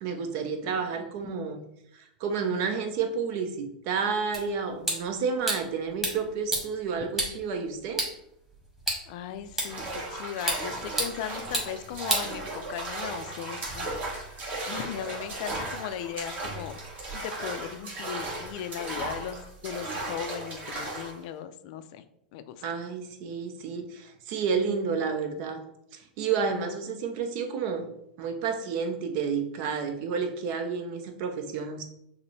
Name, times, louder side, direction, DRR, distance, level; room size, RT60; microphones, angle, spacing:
voice 1, 0.0-1.6 1.9-8.1 22.6-25.6 25.9-27.9 28.2-31.8, right 5 dB, 55° right, 6 dB, 0.7 m, -30 dB
sound 1, 4.3-12.9, right 1 dB, 10° right, 1.4 m, -34 dB
voice 2, 9.1-13.9 14.2-14.4 14.7-16.8 17.1-22.1 22.3-22.6, left 9 dB, 60° left, 10 dB, 0.4 m, -37 dB
sound 2, 9.6-21.2, right 2 dB, 35° right, 1.3 m, -36 dB
5.8 x 2.1 x 3.2 m, 0.76 s
hypercardioid pair, 115°, 5 cm